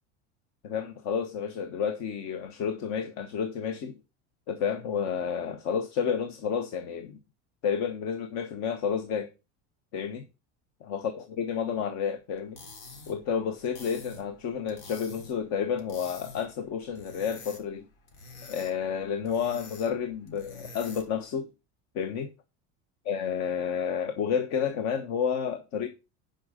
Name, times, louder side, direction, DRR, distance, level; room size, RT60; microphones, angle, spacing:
voice 1, 0.6-4.0 4.5-7.2 7.6-9.3 9.9-10.2 10.8-12.6 13.1-17.9 18.5-21.5 21.9-22.3 23.1-25.9, left 7 dB, 55° left, 1.2 m, -30 dB
sound 1, 12.4-21.2, left 3 dB, 80° left, 3.6 m, -48 dB
10.5 x 5.6 x 5.0 m
cardioid pair, 145°, 33 cm